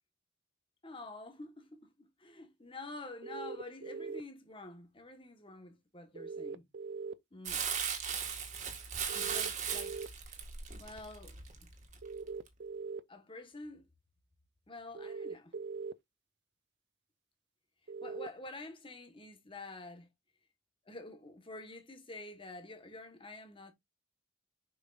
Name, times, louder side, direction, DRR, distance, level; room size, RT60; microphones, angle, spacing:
voice 1, 0.8-6.6 7.3-7.6 9.1-10.0 10.8-11.4 13.1-13.9 14.7-15.5 18.0-20.1 20.9-23.7, left 2 dB, 25° left, 1.4 m, -48 dB
sound 1, 3.2-4.2 6.2-7.1 9.1-10.1 12.0-13.0 14.9-15.9 17.9-18.3, right 4 dB, 55° right, 0.5 m, -41 dB
Crumpling crinkling, 7.5-12.0 12.5-12.6, right 7 dB, 35° right, 1.9 m, -37 dB
7.0 x 5.7 x 2.5 m
head